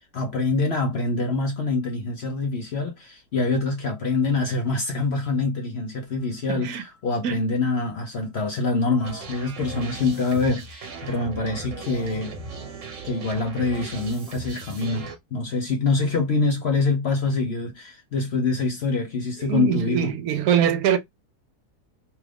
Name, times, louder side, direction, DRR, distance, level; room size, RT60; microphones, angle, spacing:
voice 1, 0.1-12.3 13.0-20.1, left 3 dB, 55° left, 0.7 m, -25 dB
voice 2, 6.5-6.8 7.2-7.4 19.4-21.0, right 9 dB, 75° right, 1.0 m, -23 dB
sound 1, 9.0-15.2, right 4 dB, 55° right, 1.2 m, -38 dB
3.0 x 2.4 x 3.3 m
omnidirectional pair, 1.7 m